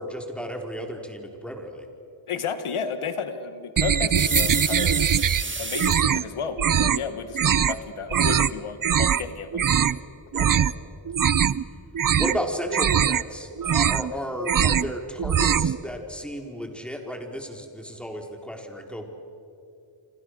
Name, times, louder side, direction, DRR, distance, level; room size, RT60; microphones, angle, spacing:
voice 1, 0.0-1.9 10.3-10.5 12.2-19.1, equal, ahead, 2 dB, 4.1 m, -33 dB
voice 2, 2.3-5.1 5.6-9.9, left 6 dB, 90° left, 9 dB, 1.9 m, -32 dB
sound 1, 3.8-5.4 5.7-6.2 6.6-7.0 7.3-7.7 8.1-8.5 8.8-9.2 9.5-10.0 10.3-10.7 11.1-11.6 11.9-12.4 12.7-13.2 13.6-14.1 14.4-14.9 15.2-15.8, right 8 dB, 45° right, 0.7 m, -21 dB
sound 2, 4.1-6.0, right 3 dB, 25° right, 2.0 m, -29 dB
29.0 x 26.0 x 6.5 m, 2.5 s
cardioid pair, 80°, 49 cm